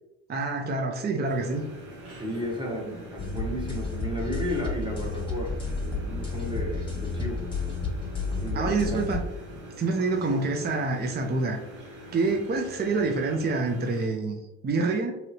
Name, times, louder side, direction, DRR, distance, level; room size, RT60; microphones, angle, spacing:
voice 1, 0.3-1.7 8.5-9.2 9.5-11.6 12.1-15.1, right 3 dB, 30° right, 2 dB, 0.6 m, -27 dB
sound 1, 1.2-14.1, equal, 75° right, 0.9 m, -45 dB
voice 2, 2.2-5.5 5.8-7.5 8.4-9.0 9.9-10.1, equal, 15° right, -1 dB, 1.0 m, -33 dB
sound 2, 3.2-9.2, left 4 dB, 15° left, 1.1 m, -31 dB
3.0 x 2.8 x 2.7 m, 0.92 s
hypercardioid pair, 60°, 33 cm